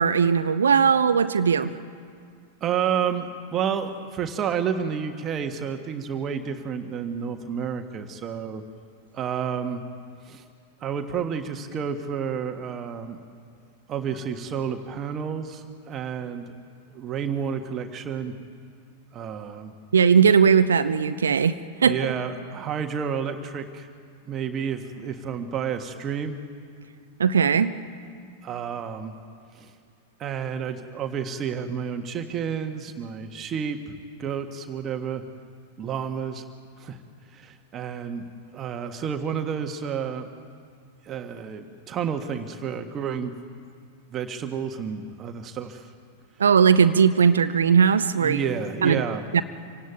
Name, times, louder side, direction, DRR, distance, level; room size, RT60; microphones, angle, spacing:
voice 1, 0.0-1.7 19.9-22.0 27.2-27.7 46.4-48.4 48.8-49.0 49.3-49.4, right 6 dB, 70° right, 12 dB, 0.7 m, -19 dB
voice 2, 2.6-8.6 9.1-9.8 10.3-10.4 10.8-13.2 13.9-16.5 16.9-18.3 19.1-19.7 21.8-23.9 24.3-26.4 28.4-29.1 29.5-29.7 30.2-35.2 35.8-36.4 36.8-37.0 37.3-38.2 38.5-40.3 41.0-43.3 44.1-45.9 48.2-49.2, right 7 dB, 30° right, 6 dB, 1.6 m, -30 dB
26.0 x 17.5 x 9.3 m, 2.2 s
figure-of-eight pair, 90°, 0 cm